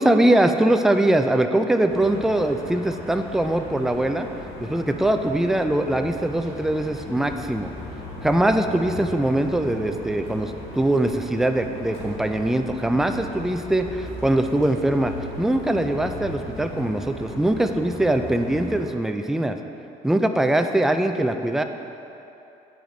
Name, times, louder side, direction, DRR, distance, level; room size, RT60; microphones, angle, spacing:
voice 1, 0.0-4.3 4.6-7.7 8.2-15.1 15.4-19.6 20.0-21.6, right 1 dB, ahead, 6 dB, 0.3 m, -22 dB
sound 1, 1.9-18.8, left 2 dB, 85° left, 1.5 m, -37 dB
8.9 x 5.0 x 3.9 m, 2.8 s
cardioid pair, 110°, 17 cm